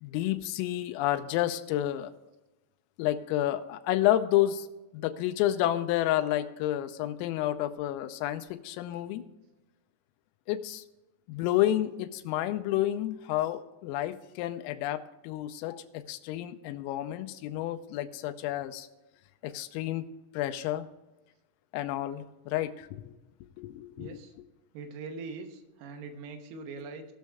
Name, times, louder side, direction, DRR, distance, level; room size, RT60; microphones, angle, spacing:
voice 1, 0.0-2.1 3.0-4.7 4.9-9.2 10.5-10.8 11.3-18.9 19.4-20.0 20.3-20.9 21.7-23.1 23.6-24.2, left 13 dB, 85° left, 9 dB, 3.3 m, -30 dB
voice 2, 24.0-24.3 24.7-27.1, right 4 dB, 85° right, 5 dB, 3.9 m, -42 dB
19.0 x 6.4 x 3.5 m, 1.0 s
omnidirectional pair, 6.0 m